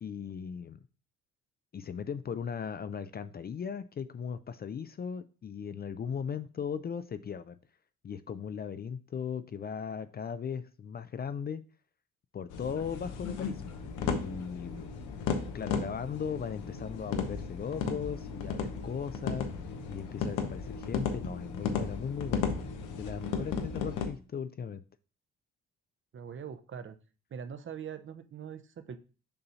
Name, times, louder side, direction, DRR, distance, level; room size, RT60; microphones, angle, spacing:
voice 1, 0.0-0.8 1.7-7.6 8.0-11.6 12.3-13.6 14.0-14.9 15.5-19.5 19.9-22.5 22.9-24.8, left 7 dB, 35° left, 12 dB, 0.4 m, -37 dB
sound 1, 12.5-24.1, left 5 dB, 90° left, 0.9 m, -35 dB
voice 2, 26.1-27.0 27.3-29.0, right 7 dB, 40° right, 10 dB, 0.6 m, -42 dB
6.9 x 2.6 x 5.6 m, 0.36 s
cardioid pair, 90°, 30 cm